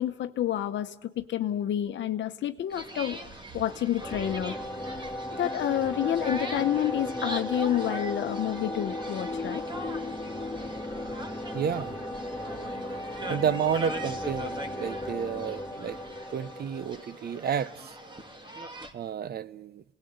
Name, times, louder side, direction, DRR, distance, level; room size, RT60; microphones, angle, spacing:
voice 1, 0.0-3.2 3.5-4.5 5.4-9.6, left 11 dB, 70° left, 0.9 m, -29 dB
sound 1, 2.7-18.9, right 1 dB, 25° right, 2.5 m, -41 dB
sound 2, 4.0-17.6, left 1 dB, 10° left, 2.8 m, -36 dB
voice 2, 11.5-12.0 13.3-16.0 16.3-18.0 18.9-19.8, right 8 dB, 50° right, 0.8 m, -31 dB
29.0 x 19.0 x 7.9 m
cardioid pair, 90°, 20 cm